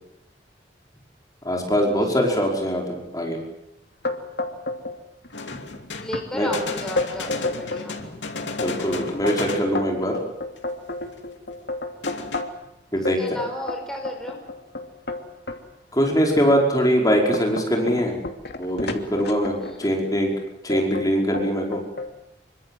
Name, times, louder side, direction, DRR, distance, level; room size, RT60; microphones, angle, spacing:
voice 1, 1.5-3.4 5.5-5.6 6.3-6.5 8.6-10.1 12.9-13.4 15.9-18.1 18.6-20.3 20.6-21.8, equal, 20° left, 0 dB, 5.2 m, -22 dB
sound 1, 4.0-5.0 5.2-5.8 6.1-6.2 6.7-7.9 8.3-12.7 13.0-15.6 16.2-16.4 16.8-19.9 20.7-21.1 21.3-22.1, left 2 dB, 65° left, 2.8 m, -30 dB
sound 2, 5.3-10.2 10.6-10.7 11.2-11.3 12.0-12.4, left 3 dB, 90° left, 2.8 m, -34 dB
voice 2, 6.0-8.0 13.0-14.4 19.6-19.8, equal, 5° left, 1 dB, 5.0 m, -34 dB
26.0 x 24.0 x 7.6 m, 0.85 s
head